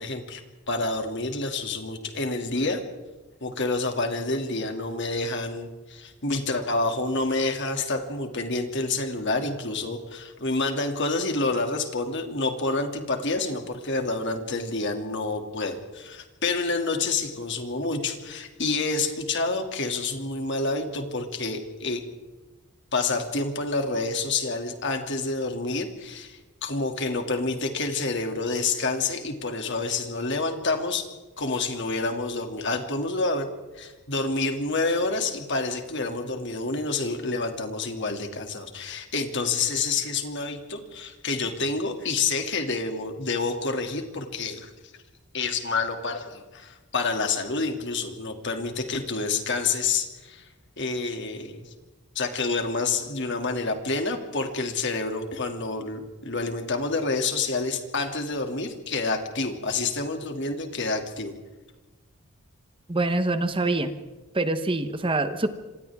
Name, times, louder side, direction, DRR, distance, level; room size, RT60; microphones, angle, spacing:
voice 1, 0.0-2.8 3.4-22.0 22.9-31.1 31.4-33.5 33.7-44.7 45.3-50.5 50.8-51.7 52.1-61.3, left 3 dB, 55° left, 5 dB, 2.6 m, -28 dB
voice 2, 62.9-64.0 64.3-65.5, right 2 dB, 25° right, 10 dB, 1.1 m, -25 dB
27.0 x 26.5 x 3.6 m, 1.2 s
head